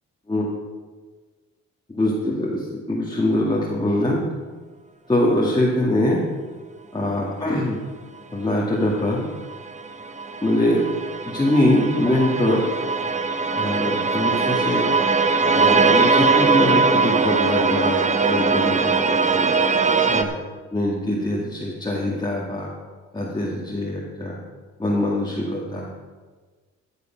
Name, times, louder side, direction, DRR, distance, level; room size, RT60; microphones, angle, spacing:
voice 1, 1.9-4.2 5.1-6.3 6.9-7.8 8.3-9.3 10.4-10.9 11.3-12.6 13.5-14.9 15.5-19.5 20.1-20.4 20.7-22.7 23.1-24.4 24.8-25.9, left 1 dB, 15° left, -5 dB, 2.0 m, -23 dB
sound 1, 9.1-9.2 9.5-20.2, right 4 dB, 25° right, 0.8 m, -21 dB
13.5 x 6.9 x 5.8 m, 1.4 s
cardioid pair, 90°, 30 cm